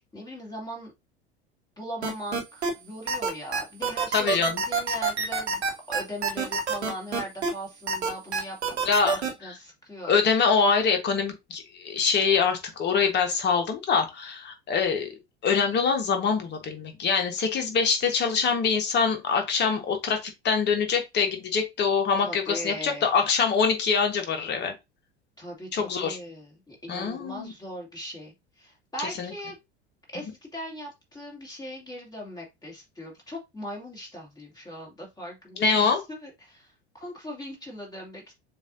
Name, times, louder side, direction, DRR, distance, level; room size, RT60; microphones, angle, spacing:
voice 1, 0.1-0.9 1.8-5.6 5.9-10.1 22.2-23.1 25.4-29.6 30.1-38.3, equal, 10° left, 2.2 m, -39 dB
sound 1, 2.0-2.7 3.1-7.5 7.9-9.3, right 5 dB, 75° right, 1.2 m, -26 dB
voice 2, 4.1-4.6 8.8-9.5 10.0-15.1 15.4-24.7 25.7-26.2 26.9-27.5 29.2-29.3 35.6-36.0, left 5 dB, 30° left, 1.3 m, -24 dB
6.9 x 2.7 x 2.6 m
figure-of-eight pair, 75°, 33 cm